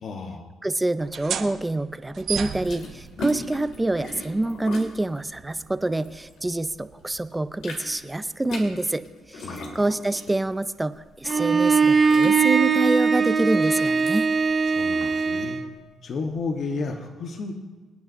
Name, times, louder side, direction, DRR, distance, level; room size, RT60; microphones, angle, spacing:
voice 1, 0.0-0.5 9.4-9.9 14.6-15.6 16.0-17.5, left 4 dB, 60° left, 3 dB, 1.1 m, -32 dB
voice 2, 0.6-14.3, right 2 dB, 15° right, 13 dB, 0.5 m, -26 dB
sound 1, 1.0-8.2, right 7 dB, 65° right, 0.9 m, -38 dB
sound 2, 2.3-6.8 7.1-15.2, left 1 dB, 85° left, 2.2 m, -39 dB
Bowed string instrument, 11.3-15.7, right 5 dB, 40° right, 1.1 m, -21 dB
25.5 x 9.3 x 2.6 m, 1.3 s
cardioid pair, 90°, 0 cm